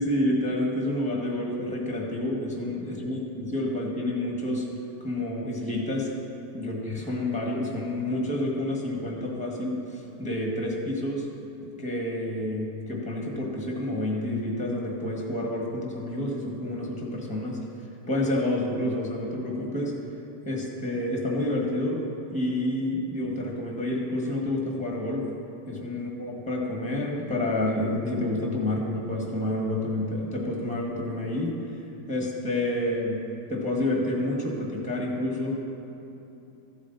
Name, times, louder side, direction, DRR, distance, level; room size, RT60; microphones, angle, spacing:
voice 1, 0.0-4.7 5.0-6.1 6.5-11.3 11.8-17.6 18.1-19.9 20.4-22.0 22.3-25.3 25.7-31.5 32.1-33.2 33.5-35.6, left 1 dB, 5° left, -2 dB, 1.5 m, -29 dB
14.5 x 8.2 x 4.1 m, 3.0 s
omnidirectional pair, 1.8 m